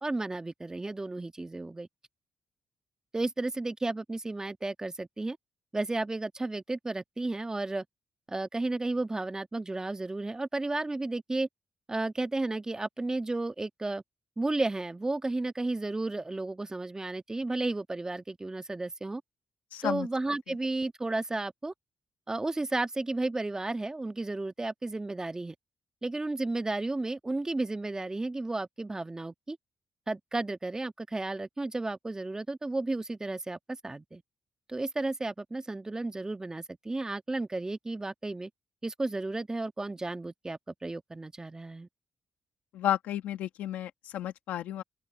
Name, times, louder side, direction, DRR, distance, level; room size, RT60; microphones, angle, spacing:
voice 1, 0.0-1.9 3.1-5.4 5.7-7.8 8.3-11.5 11.9-14.0 14.4-19.2 19.8-21.7 22.3-25.5 26.0-29.6 30.1-34.2 34.7-38.5 38.8-41.9, right 2 dB, 25° right, 1.5 m, -33 dB
voice 2, 19.7-20.1 42.7-44.8, left 11 dB, 90° left, 1.6 m, -32 dB
open air
supercardioid pair, 60°, 3 cm